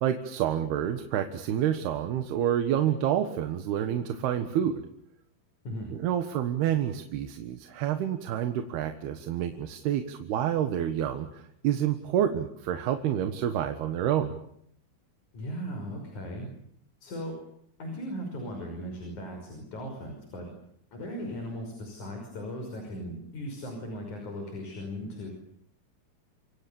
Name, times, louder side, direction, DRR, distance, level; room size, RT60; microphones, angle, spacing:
voice 1, 0.0-4.8 5.9-14.4, right 10 dB, 80° right, 7 dB, 3.4 m, -28 dB
voice 2, 15.3-16.5 17.0-17.4 17.8-20.5 20.9-25.3, equal, 50° left, 3 dB, 7.1 m, -37 dB
29.0 x 26.0 x 7.1 m, 0.71 s
omnidirectional pair, 4.5 m